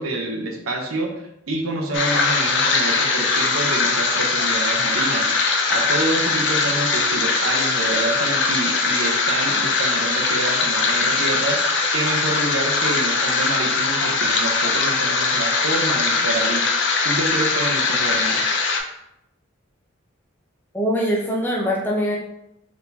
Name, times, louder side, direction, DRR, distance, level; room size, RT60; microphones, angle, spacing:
voice 1, 0.0-16.6 17.0-18.4, right 2 dB, 85° right, 2 dB, 0.8 m, -27 dB
sound 1, 1.9-18.8, left 4 dB, 55° left, 0.5 m, -21 dB
voice 2, 20.7-22.2, equal, 10° left, -3 dB, 0.6 m, -22 dB
3.9 x 3.5 x 2.8 m, 0.80 s
head